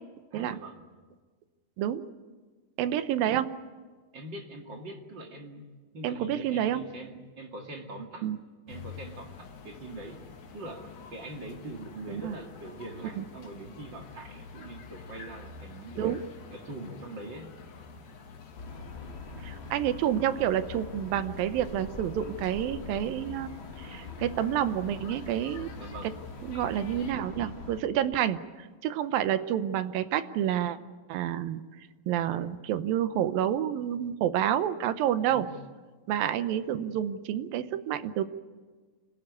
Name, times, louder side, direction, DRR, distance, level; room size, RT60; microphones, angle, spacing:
voice 1, 0.3-0.8 4.1-5.7 5.9-8.3 8.7-10.3 10.5-16.1 16.5-17.5 25.7-26.2 35.3-35.5, right 2 dB, 40° right, 3 dB, 2.3 m, -43 dB
voice 2, 2.8-3.5 6.0-6.8 8.2-8.4 12.1-12.4 13.2-13.3 16.0-16.2 19.4-23.5 23.8-25.7 26.4-30.8 31.1-31.6 32.1-35.5 36.1-38.2, right 10 dB, 80° right, 12 dB, 2.6 m, -29 dB
sound 1, 8.7-27.1, left 6 dB, 80° left, 3.9 m, -49 dB
sound 2, 18.6-27.8, left 3 dB, 35° left, 1.1 m, -43 dB
26.0 x 17.0 x 9.6 m, 1.4 s
omnidirectional pair, 4.1 m